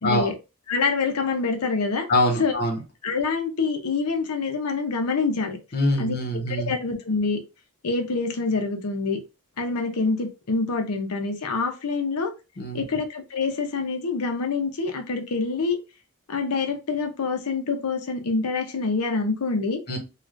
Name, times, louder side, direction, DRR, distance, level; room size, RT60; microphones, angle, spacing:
voice 1, 0.0-0.3 0.7-2.1 2.4-2.5 3.0-5.6 6.0-6.2 6.5-7.4 7.8-9.2 9.6-12.3 12.7-15.8 16.3-19.8, left 4 dB, 85° left, 0.7 m, -26 dB
voice 2, 2.1-2.8 5.7-6.7 12.6-12.8 19.9-20.0, left 1 dB, 45° left, 0.9 m, -24 dB
3.2 x 2.4 x 2.4 m
head